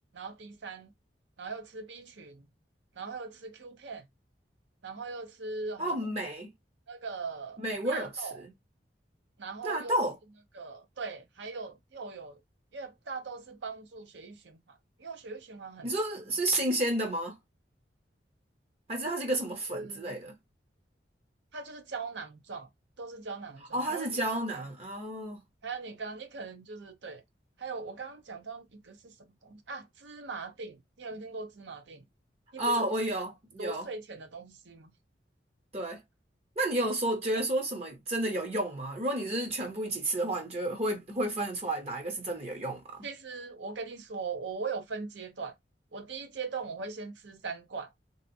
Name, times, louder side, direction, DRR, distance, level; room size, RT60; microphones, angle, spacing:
voice 1, 0.1-0.9 1.4-2.5 3.0-4.1 4.8-6.0 6.9-8.4 9.4-10.0 10.5-12.4 12.7-15.9 19.7-20.2 21.5-22.7 23.0-24.6 25.6-27.2 27.6-32.0 32.5-32.9 33.6-34.9 43.0-45.5 45.9-47.9, right 4 dB, 85° right, 0.7 m, -40 dB
voice 2, 5.8-6.5 7.6-8.5 9.6-10.1 15.8-17.3 18.9-20.3 23.7-25.4 32.6-33.9 35.7-36.0 36.6-43.1, right 1 dB, 35° right, 0.6 m, -31 dB
3.3 x 2.7 x 2.6 m
head